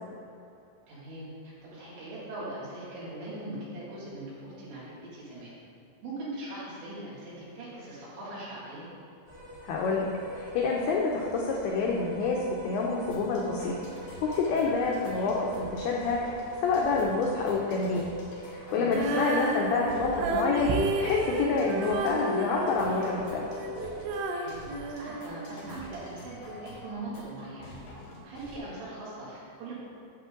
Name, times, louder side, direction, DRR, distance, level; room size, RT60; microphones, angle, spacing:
voice 1, 0.9-5.6 6.0-8.9 18.7-19.0 24.3-27.7 28.2-29.7, right 1 dB, 70° right, -8 dB, 4.7 m, -41 dB
sound 1, 9.3-24.2, equal, 35° right, 1.7 m, -41 dB
voice 2, 9.6-12.4 12.6-13.7 14.2-18.1 18.5-20.7 21.0-23.5, left 4 dB, 85° left, -2 dB, 2.2 m, -28 dB
sound 2, 13.1-28.6, left 1 dB, 60° left, 3.4 m, -48 dB
Female singing, 18.9-25.9, right 2 dB, 90° right, 3.1 m, -32 dB
10.5 x 7.6 x 3.8 m, 2.7 s
omnidirectional pair, 5.5 m